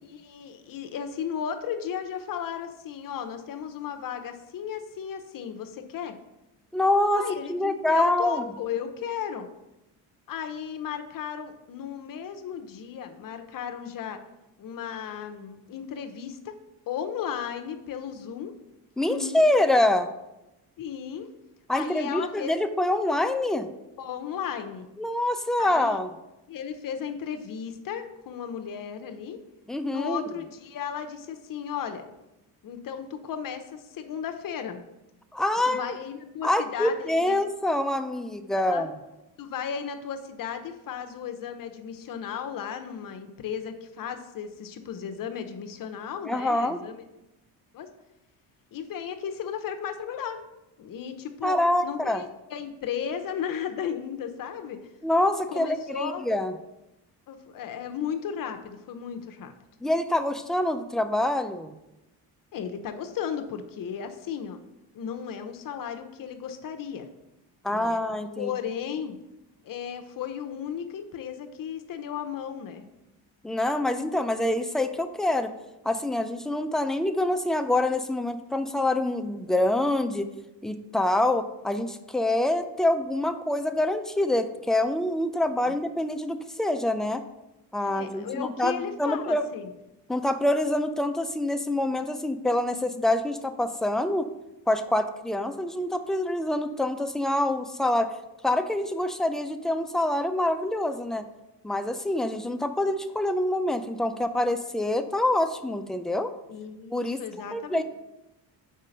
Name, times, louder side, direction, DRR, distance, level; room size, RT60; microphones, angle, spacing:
voice 1, 0.0-6.1 7.2-9.5 10.3-14.2 14.6-16.5 16.9-18.5 19.0-19.4 20.8-21.3 21.7-22.5 24.0-24.9 25.6-26.0 26.5-29.4 29.9-32.1 32.6-34.8 35.6-37.4 38.5-38.8 39.4-47.0 47.7-47.9 48.7-50.4 50.8-54.8 55.5-56.3 57.3-59.5 62.5-64.6 64.9-67.1 67.7-68.0 68.4-69.2 69.6-72.8 87.8-89.7 106.5-107.8, left 8 dB, 55° left, 7 dB, 0.8 m, -35 dB
voice 2, 6.7-8.4 19.0-20.1 21.7-23.7 25.0-26.1 29.7-30.2 35.3-35.8 36.4-39.0 46.3-46.8 51.4-52.2 55.0-56.5 59.8-61.8 67.6-68.5 73.4-75.5 75.8-80.3 80.6-87.2 87.7-89.4 90.1-94.3 94.7-98.1 98.4-101.3 101.6-106.3 106.9-107.2 107.5-107.8, left 1 dB, ahead, 8 dB, 0.3 m, -26 dB
5.0 x 3.7 x 5.4 m, 0.94 s
supercardioid pair, 75°, 41 cm